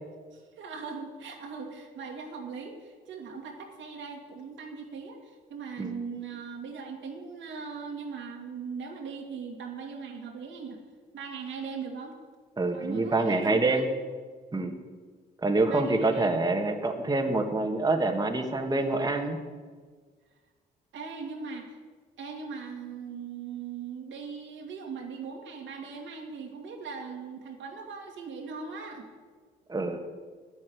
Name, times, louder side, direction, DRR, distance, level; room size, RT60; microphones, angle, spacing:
voice 1, 0.3-10.8 11.1-12.1 12.7-13.8 15.7-16.3 20.9-21.8 22.2-29.1, right 5 dB, 75° right, 2 dB, 2.3 m, -39 dB
voice 2, 12.6-13.9 14.5-14.8 15.4-19.4 29.7-30.0, right 2 dB, 20° right, 3 dB, 1.6 m, -26 dB
9.7 x 8.0 x 9.4 m, 1.5 s
supercardioid pair, 70°, 20 cm